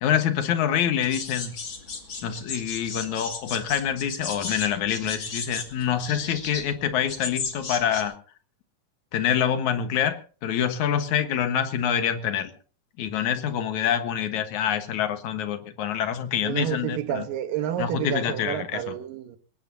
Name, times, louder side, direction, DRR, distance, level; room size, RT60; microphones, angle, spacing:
voice 1, 0.0-1.5 2.2-8.2 9.1-12.5 13.0-17.3 17.8-18.9, left 9 dB, 65° left, 2.6 m, -26 dB
sound 1, 1.0-8.0, left 4 dB, 40° left, 2.7 m, -35 dB
voice 2, 16.4-19.4, right 10 dB, 85° right, 2.9 m, -30 dB
22.0 x 19.0 x 2.8 m
omnidirectional pair, 3.9 m